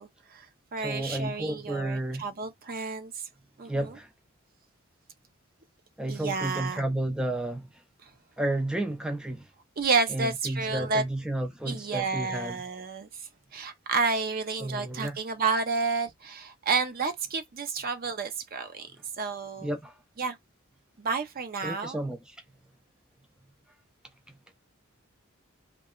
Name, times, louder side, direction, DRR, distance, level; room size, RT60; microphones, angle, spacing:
voice 1, 0.0-3.2 3.6-3.9 6.1-6.8 8.0-8.1 9.8-11.0 11.7-13.1 13.5-18.9 19.2-19.7 20.2-20.4 21.0-22.0, right 4 dB, 45° right, 0.6 m, -30 dB
voice 2, 0.8-2.2 3.6-4.1 6.0-7.8 8.4-9.5 10.1-12.6 14.6-15.2 19.6-20.0 21.6-22.4 24.3-24.4, right 1 dB, 5° right, 0.4 m, -32 dB
2.8 x 2.3 x 2.3 m
head